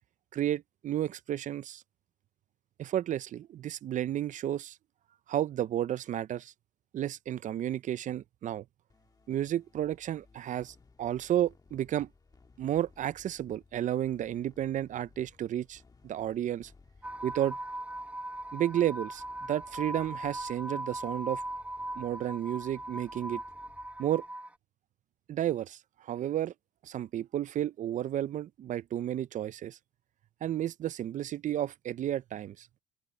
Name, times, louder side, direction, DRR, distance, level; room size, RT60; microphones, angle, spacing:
voice 1, 0.3-1.8 2.8-4.8 5.3-6.5 6.9-8.6 9.3-12.1 12.6-16.7 17.2-17.6 18.5-19.2 19.5-21.4 22.0-23.4 24.0-24.2 25.3-26.5 26.8-29.8 30.4-32.7, right 11 dB, 50° right, 0.5 m, -32 dB
sound 1, 8.9-24.3, left 4 dB, 20° left, 1.5 m, -61 dB
sound 2, 17.0-24.5, right 1 dB, 10° right, 0.9 m, -39 dB
open air
cardioid pair, 110°, 17 cm